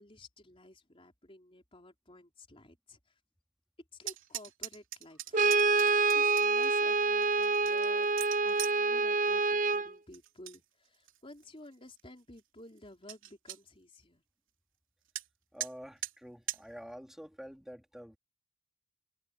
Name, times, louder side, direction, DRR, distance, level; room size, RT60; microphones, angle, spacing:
voice 1, 0.0-3.0 4.0-5.9 6.1-8.1 8.4-14.2, left 1 dB, 25° left, 4.1 m, -53 dB
sound 1, 4.0-6.7 7.2-8.8 10.1-10.6 10.9-11.4 12.0-12.1 12.4-12.5 12.8-12.9 13.1-13.6 15.2-15.3 15.6-15.7 16.0-16.1 16.5-16.6, right 12 dB, 70° right, 3.2 m, -41 dB
Brass instrument, 5.3-9.9, right 4 dB, 40° right, 0.6 m, -27 dB
voice 2, 15.5-18.2, equal, ahead, 3.4 m, -48 dB
head